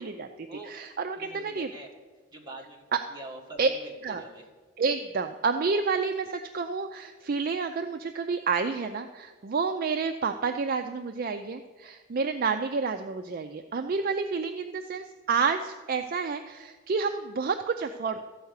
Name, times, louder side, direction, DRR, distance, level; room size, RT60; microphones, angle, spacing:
voice 1, 0.0-1.7 2.9-3.0 3.6-3.7 4.0-4.2 4.8-18.2, right 5 dB, 40° right, 7 dB, 0.4 m, -29 dB
voice 2, 1.2-1.9 2.3-2.8 3.1-4.4, right 1 dB, 20° right, -2 dB, 1.5 m, -44 dB
13.5 x 4.7 x 8.1 m, 1.4 s
head